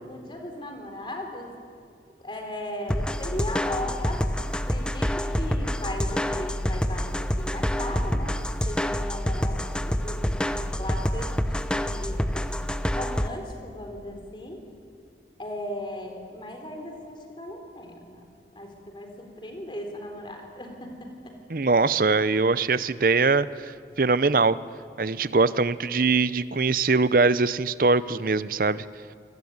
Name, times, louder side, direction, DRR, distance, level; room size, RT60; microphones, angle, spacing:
voice 1, 0.1-1.5 2.2-12.5 12.9-14.6 15.4-18.2 18.5-21.3, left 1 dB, 25° left, 4 dB, 3.9 m, -37 dB
sound 1, 2.9-13.3, equal, 5° left, 0.7 m, -27 dB
voice 2, 21.5-23.7 24.0-24.6 25.0-28.8, right 4 dB, 50° right, 16 dB, 0.6 m, -22 dB
27.0 x 20.5 x 9.5 m, 2.3 s
head